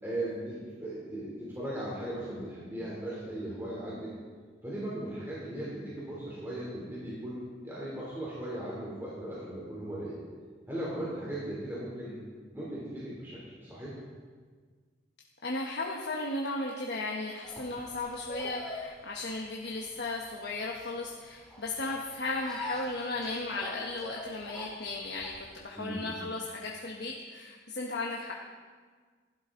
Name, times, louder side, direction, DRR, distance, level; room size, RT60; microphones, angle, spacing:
voice 1, 0.0-4.1 4.6-10.2 10.7-12.2 12.5-14.0 25.7-26.1, right 1 dB, 10° right, -7 dB, 2.9 m, -38 dB
voice 2, 15.4-28.3, left 2 dB, 65° left, -2 dB, 1.1 m, -35 dB
sound 1, 17.4-25.6, left 1 dB, 5° left, 2.3 m, -44 dB
15.0 x 12.0 x 3.8 m, 1.5 s
head